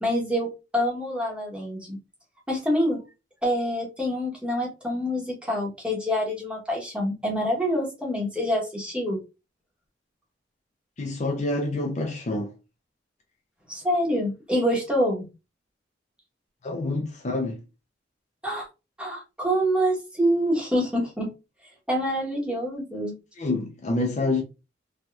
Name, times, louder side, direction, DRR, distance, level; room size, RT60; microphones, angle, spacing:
voice 1, 0.0-2.0 2.5-3.0 3.4-9.2 13.7-15.3 18.4-18.7 19.0-21.3 21.9-23.1, equal, 5° right, 1.0 m, -26 dB
voice 2, 11.0-12.5 16.6-17.6 23.4-24.4, left 2 dB, 40° left, 0.5 m, -27 dB
3.2 x 2.8 x 2.3 m
head